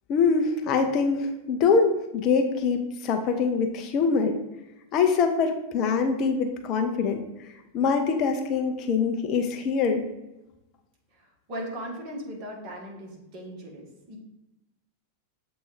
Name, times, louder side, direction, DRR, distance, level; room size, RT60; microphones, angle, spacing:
voice 1, 0.1-4.4 4.9-7.2 7.7-10.1, left 5 dB, 35° left, 5 dB, 0.6 m, -24 dB
voice 2, 11.1-14.2, equal, 40° right, 0 dB, 1.5 m, -38 dB
7.4 x 2.6 x 4.9 m, 0.95 s
figure-of-eight pair, 90°, 0 cm